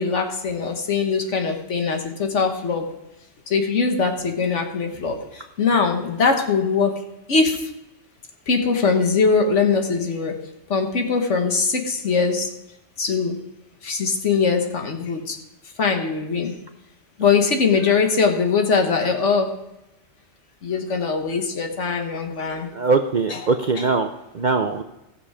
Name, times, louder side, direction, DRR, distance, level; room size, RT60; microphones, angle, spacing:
voice 1, 0.0-2.9 3.5-7.7 8.5-10.4 10.7-12.6 13.0-13.5 13.8-15.4 15.8-16.6 17.2-19.6 20.6-22.7 23.3-23.4 23.7-23.9, left 5 dB, 65° left, 4 dB, 1.6 m, -22 dB
voice 2, 22.7-24.8, right 4 dB, 50° right, 7 dB, 0.6 m, -21 dB
15.5 x 7.0 x 4.9 m, 0.92 s
omnidirectional pair, 1.3 m